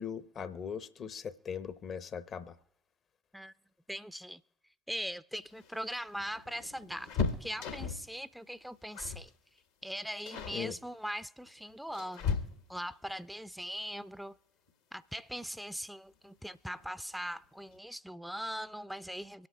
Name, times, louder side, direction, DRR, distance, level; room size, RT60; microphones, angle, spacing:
voice 1, 0.0-2.5 10.5-10.8, left 7 dB, 50° left, 0.6 m, -40 dB
voice 2, 3.9-4.4 4.9-7.1 7.4-9.3 9.8-12.4 12.7-14.4 14.9-19.5, equal, ahead, 0.4 m, -40 dB
sound 1, 5.4-8.1 8.9-9.3 9.6-9.8 10.3-10.6 11.5-12.9 14.7-14.8 15.2-15.3 16.4-16.9 17.2-17.3 17.6-17.8, left 5 dB, 75° left, 1.0 m, -36 dB
24.5 x 8.6 x 2.3 m
figure-of-eight pair, 50°, 0 cm